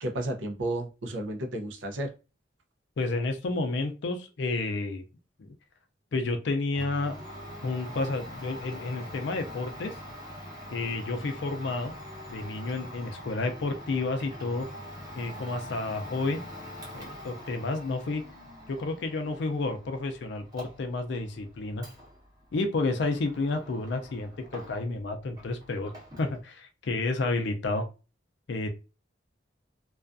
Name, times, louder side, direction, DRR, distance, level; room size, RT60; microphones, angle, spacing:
voice 1, 0.0-2.1, right 1 dB, 85° right, 3 dB, 0.5 m, -32 dB
voice 2, 3.0-5.0 5.4-5.5 6.1-7.2 7.6-9.9 10.7-11.9 12.3-14.7 15.2-16.4 16.9-18.2 18.7-21.9 22.5-25.9 26.2-27.9 28.5-28.7, left 3 dB, 70° left, 6 dB, 0.4 m, -30 dB
Domestic sounds home sounds, 6.7-25.1 25.3-26.4, equal, 20° right, 0.8 m, -44 dB
2.4 x 2.3 x 2.4 m, 0.31 s
head